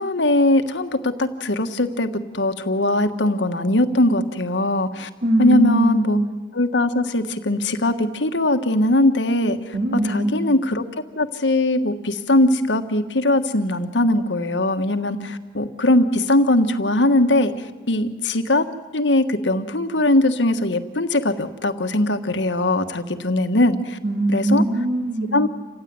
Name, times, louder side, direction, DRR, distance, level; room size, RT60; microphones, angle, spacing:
voice 1, 0.0-5.1 5.4-6.2 6.5-9.6 10.1-10.8 11.1-17.5 17.9-18.7 18.9-24.0 24.3-24.6 25.3-25.5, left 1 dB, 85° left, 8 dB, 1.5 m, -20 dB
voice 2, 5.2-6.1 9.7-10.3 24.0-25.3, right 1 dB, 55° right, 2 dB, 4.2 m, -21 dB
28.5 x 16.0 x 9.5 m, 1.3 s
head